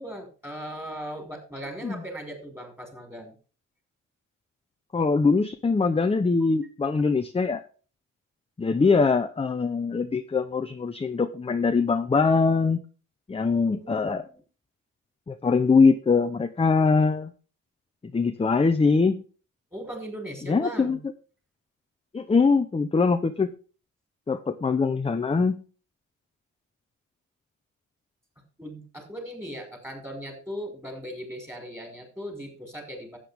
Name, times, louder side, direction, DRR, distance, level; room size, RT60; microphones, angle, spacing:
voice 1, 0.0-3.3 13.7-14.4 19.7-21.0 28.6-33.2, equal, 10° right, 3 dB, 5.6 m, -38 dB
voice 2, 4.9-7.6 8.6-12.8 13.3-14.2 15.3-17.3 18.1-19.2 20.5-21.0 22.1-23.5 24.3-25.6, left 4 dB, 20° left, 8 dB, 0.9 m, -22 dB
13.0 x 9.2 x 3.6 m, 0.37 s
cardioid pair, 90°, 30 cm